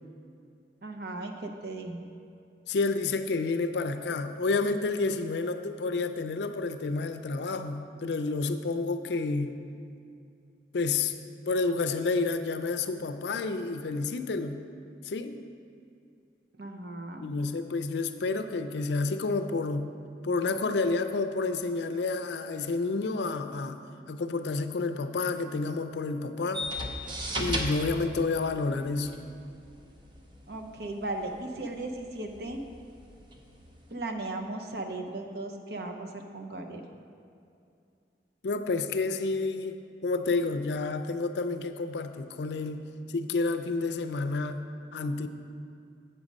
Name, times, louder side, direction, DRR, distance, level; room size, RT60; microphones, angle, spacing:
voice 1, 0.8-2.0 16.6-17.3 30.5-32.6 33.9-36.8, right 2 dB, 65° right, 4 dB, 0.7 m, -37 dB
voice 2, 2.7-9.5 10.7-11.1 11.5-14.6 15.0-15.4 17.2-19.9 20.2-23.8 24.1-26.7 27.4-29.1 38.4-44.6 44.9-45.3, left 3 dB, 75° left, 9 dB, 0.5 m, -30 dB
sound 1, 26.5-33.9, equal, 25° right, 0.7 m, -37 dB
8.0 x 6.2 x 5.2 m, 2.5 s
head